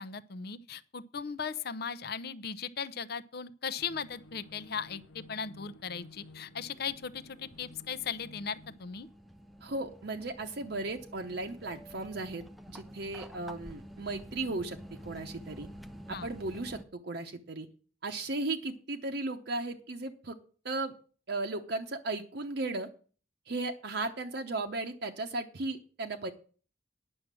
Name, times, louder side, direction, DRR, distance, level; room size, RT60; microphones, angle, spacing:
voice 1, 0.0-9.1 16.1-16.3, left 6 dB, 55° left, 0.6 m, -38 dB
sound 1, 3.8-8.8, left 2 dB, 85° left, 0.8 m, -54 dB
sound 2, 6.1-6.2 6.4-16.8, equal, ahead, 0.5 m, -49 dB
voice 2, 9.6-14.8 15.0-15.7 16.1-17.7 18.0-20.4 20.6-20.9 21.3-22.9 23.5-26.3, right 2 dB, 60° right, 0.8 m, -36 dB
9.9 x 6.3 x 7.5 m
head